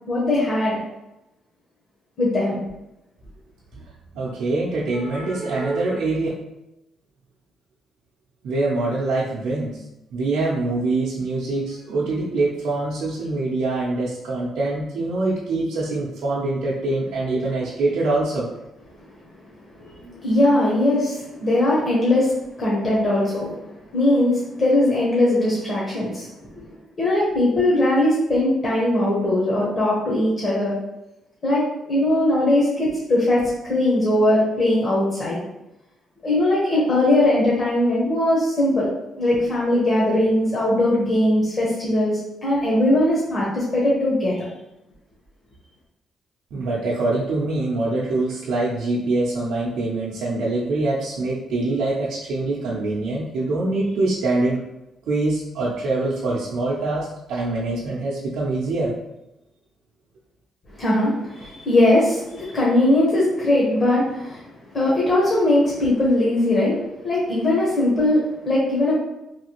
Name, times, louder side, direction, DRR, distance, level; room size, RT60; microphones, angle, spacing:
voice 1, 0.1-0.8 2.2-2.6 20.1-22.3 22.6-23.5 23.9-26.3 26.6-26.7 27.0-30.8 31.4-35.4 36.2-38.9 39.2-44.5 60.8-64.4 64.7-68.9, left 1 dB, 45° left, -6 dB, 1.0 m, -20 dB
voice 2, 4.1-6.3 8.4-9.8 10.1-18.5 19.8-20.2 46.5-54.6 55.1-58.9, right 2 dB, 80° right, -6 dB, 0.5 m, -24 dB
3.2 x 2.4 x 2.9 m, 0.93 s
cardioid pair, 90°, 0 cm